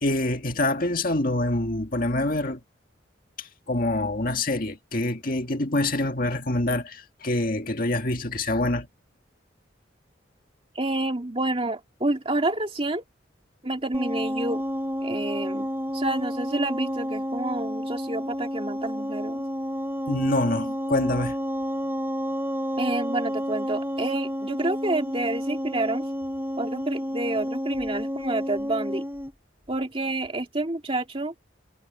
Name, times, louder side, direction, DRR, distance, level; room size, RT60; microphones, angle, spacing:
voice 1, 0.0-2.6 3.4-8.9 20.1-21.4, left 2 dB, 45° left, 1.9 m, -26 dB
voice 2, 10.7-13.0 13.6-14.6 15.0-15.7 15.9-19.4 22.8-26.0 26.6-29.0 29.7-31.3, right 2 dB, 30° right, 2.5 m, -28 dB
sound 1, 13.9-29.3, equal, 10° right, 3.0 m, -30 dB
head